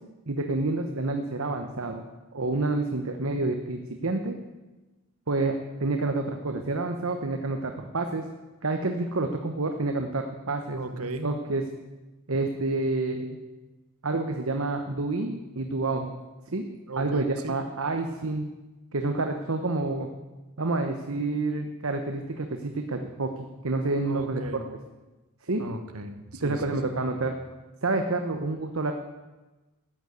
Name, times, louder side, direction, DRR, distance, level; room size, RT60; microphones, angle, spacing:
voice 1, 0.3-2.1 2.3-4.4 5.3-8.3 8.6-10.8 11.2-11.6 12.3-13.4 14.0-16.1 16.5-16.7 17.0-18.5 18.9-20.1 20.6-24.4 25.4-25.7 26.4-27.4 27.8-28.9, right 2 dB, 65° right, 5 dB, 1.1 m, -28 dB
voice 2, 10.7-11.3 16.8-17.5 24.0-24.7 25.6-27.0, right 2 dB, 80° right, 7 dB, 1.5 m, -37 dB
13.5 x 9.3 x 8.4 m, 1.1 s
head